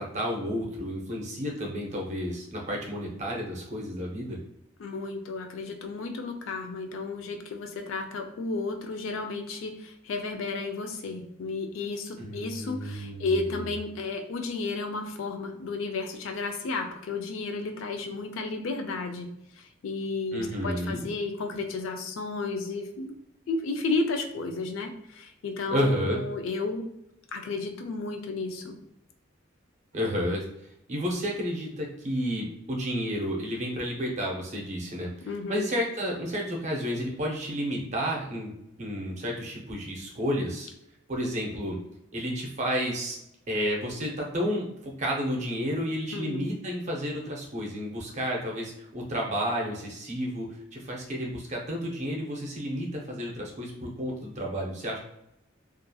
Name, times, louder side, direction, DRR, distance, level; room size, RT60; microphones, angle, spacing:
voice 1, 0.0-4.4 12.2-13.7 20.3-21.1 25.7-26.2 29.9-30.4 30.9-35.1 35.5-38.5 38.8-40.7 41.1-41.8 42.1-43.2 43.5-55.0, equal, 35° right, -1 dB, 0.5 m, -31 dB
voice 2, 4.8-19.3 19.8-23.1 23.5-26.9 27.3-28.8 35.3-35.7 46.1-46.4, left 3 dB, 75° left, 5 dB, 0.4 m, -32 dB
2.7 x 2.4 x 2.2 m, 0.81 s
head